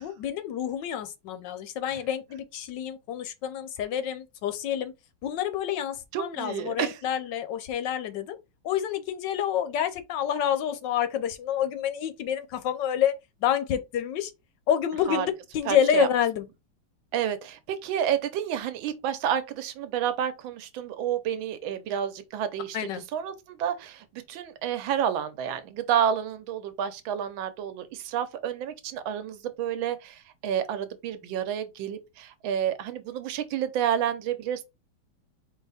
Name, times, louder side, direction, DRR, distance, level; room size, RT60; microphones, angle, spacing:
voice 1, 0.0-4.9 5.2-8.4 8.6-13.1 13.4-14.3 14.7-16.5 22.7-23.0, left 9 dB, 70° left, 1.1 m, -28 dB
voice 2, 6.1-7.0 15.1-15.3 15.7-16.1 17.1-22.8 23.1-34.6, right 9 dB, 70° right, 1.4 m, -29 dB
4.7 x 2.8 x 4.0 m
omnidirectional pair, 2.3 m